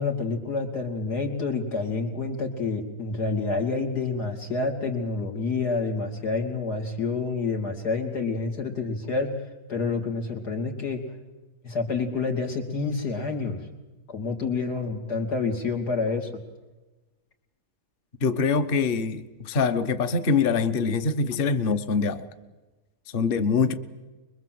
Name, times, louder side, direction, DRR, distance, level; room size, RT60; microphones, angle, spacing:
voice 1, 0.0-9.3 9.7-11.0 11.6-13.7 14.1-16.4, left 4 dB, 85° left, 2 dB, 3.5 m, -28 dB
voice 2, 18.2-22.2 23.1-23.7, left 5 dB, 40° left, 10 dB, 1.1 m, -24 dB
25.0 x 22.0 x 7.7 m, 1.2 s
omnidirectional pair, 1.7 m